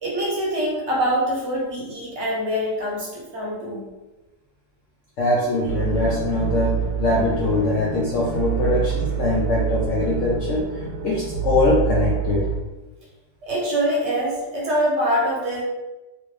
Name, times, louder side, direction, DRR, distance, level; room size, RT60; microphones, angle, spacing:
voice 1, 0.0-3.8 13.4-15.6, equal, 50° right, -4 dB, 1.0 m, -24 dB
voice 2, 5.2-12.4, left 2 dB, 70° left, -5 dB, 0.7 m, -22 dB
sound 1, 5.6-12.6, right 8 dB, 75° right, 1.1 m, -26 dB
3.1 x 2.6 x 3.1 m, 1.1 s
omnidirectional pair, 1.8 m